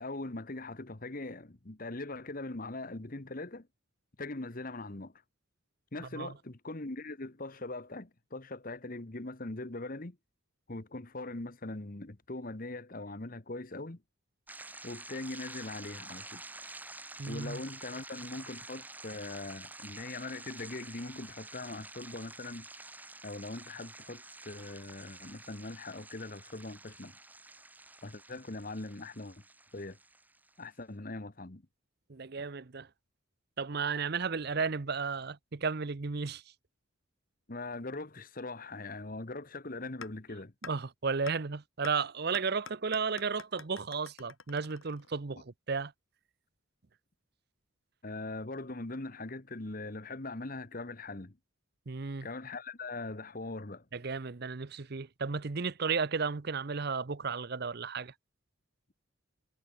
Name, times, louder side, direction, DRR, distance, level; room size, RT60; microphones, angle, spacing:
voice 1, 0.0-3.7 4.2-5.1 5.9-10.2 10.7-14.0 14.8-16.4 17.3-22.7 23.2-27.2 28.0-29.4 29.7-30.0 30.6-31.6 37.5-40.5 48.0-51.4 52.2-53.8, left 2 dB, 40° left, 1.3 m, -41 dB
sound 1, 14.5-30.6, right 2 dB, 10° right, 4.5 m, -49 dB
voice 2, 17.2-17.6 32.1-32.9 33.6-36.4 40.6-45.9 51.9-52.3 53.9-58.1, right 5 dB, 50° right, 0.7 m, -34 dB
sound 2, 40.0-40.1 40.6-40.7 41.3-41.4 41.8-41.9 42.3-45.3, left 5 dB, 75° left, 7.2 m, -46 dB
head